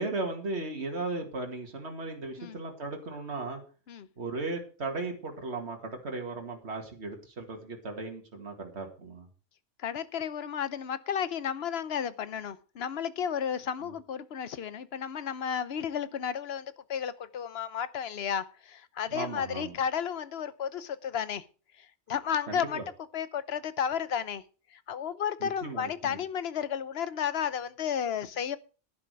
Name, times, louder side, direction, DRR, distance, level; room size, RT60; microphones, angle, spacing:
voice 1, 0.0-3.6 4.2-9.3 13.8-13.9 19.1-19.7 22.5-22.8 25.4-26.2, right 3 dB, 65° right, 2 dB, 2.4 m, -36 dB
voice 2, 9.8-21.5 21.8-22.8 23.1-24.4 24.7-28.6, left 8 dB, 65° left, 16 dB, 1.0 m, -33 dB
11.0 x 11.0 x 4.8 m, 0.36 s
omnidirectional pair, 1.2 m